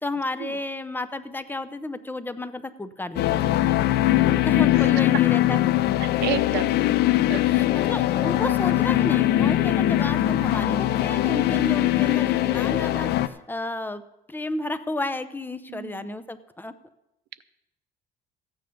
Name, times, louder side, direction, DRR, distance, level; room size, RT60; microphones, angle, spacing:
voice 1, 0.0-3.5 4.2-5.8 7.4-14.0 14.3-16.7, left 2 dB, 10° left, 12 dB, 0.7 m, -32 dB
sound 1, 3.2-13.3, left 14 dB, 75° left, 0.6 m, -21 dB
voice 2, 6.0-6.7 7.3-7.4 8.4-8.6 15.7-16.1, right 14 dB, 80° right, 15 dB, 0.6 m, -31 dB
14.5 x 9.4 x 5.2 m, 0.90 s
cardioid pair, 110°, 17 cm